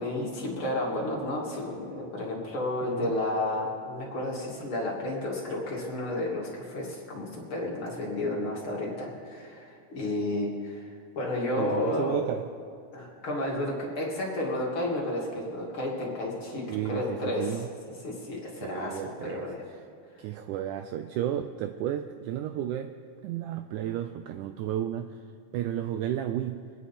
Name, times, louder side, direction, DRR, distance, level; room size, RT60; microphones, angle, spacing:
voice 1, 0.0-12.2 12.9-17.6 18.0-19.6 20.1-20.3, left 1 dB, 40° left, -4 dB, 2.6 m, -32 dB
voice 2, 2.8-3.1 11.6-12.5 16.7-17.7 18.6-19.5 20.2-22.9 23.2-25.2 25.5-26.7, right 11 dB, 90° right, 8 dB, 1.7 m, -32 dB
25.0 x 10.0 x 4.2 m, 2.3 s
omnidirectional pair, 4.0 m